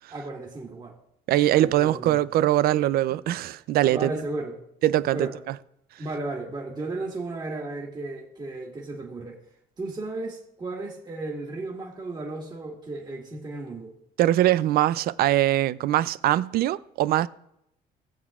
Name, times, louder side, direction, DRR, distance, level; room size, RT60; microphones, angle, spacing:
voice 1, 0.1-1.0 1.6-2.3 3.9-4.6 5.1-5.4 6.0-9.4 9.8-13.9, right 2 dB, 25° right, 1.9 m, -34 dB
voice 2, 1.3-4.1 4.8-5.5 14.2-17.3, right 13 dB, 65° right, 0.4 m, -22 dB
19.5 x 7.4 x 2.4 m
cardioid pair, 110°, 17 cm